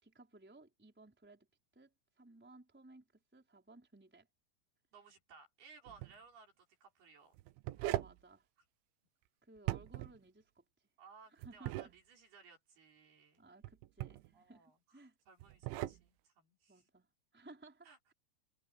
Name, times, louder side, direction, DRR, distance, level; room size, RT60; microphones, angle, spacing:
voice 1, 0.0-1.5 1.7-4.3 7.8-8.5 9.4-10.6 11.3-11.9 13.4-15.2 16.7-18.1, right 2 dB, ahead, 4.2 m, -59 dB
voice 2, 4.9-7.3 11.0-13.4 14.3-16.9 17.8-18.0, right 5 dB, 55° right, 6.4 m, -61 dB
sound 1, 5.9-6.1 7.4-8.2 9.6-10.2 11.4-11.9 13.6-14.3 15.4-16.0, right 17 dB, 90° right, 3.2 m, -39 dB
omnidirectional pair, 5.4 m